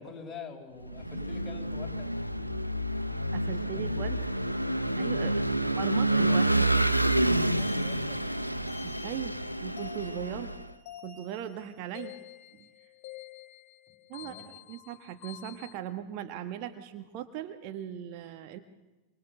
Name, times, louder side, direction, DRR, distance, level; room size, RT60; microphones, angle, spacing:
voice 1, 0.0-2.1 3.7-3.9 6.1-6.9 7.4-8.2 14.2-14.5, left 5 dB, 20° left, 1 dB, 5.4 m, -45 dB
Vehicle / Engine, 0.9-10.7, right 1 dB, 90° left, 0.8 m, -28 dB
voice 2, 3.3-4.2 5.0-5.4 5.7-6.6 8.8-9.3 9.6-10.5 11.0-12.1 12.5-12.7 14.1-18.6, right 11 dB, 45° right, 7 dB, 1.6 m, -38 dB
sound 1, 7.0-15.8, left 13 dB, 45° left, 2.9 m, -49 dB
27.0 x 25.5 x 6.7 m, 1.1 s
figure-of-eight pair, 90°, 0 cm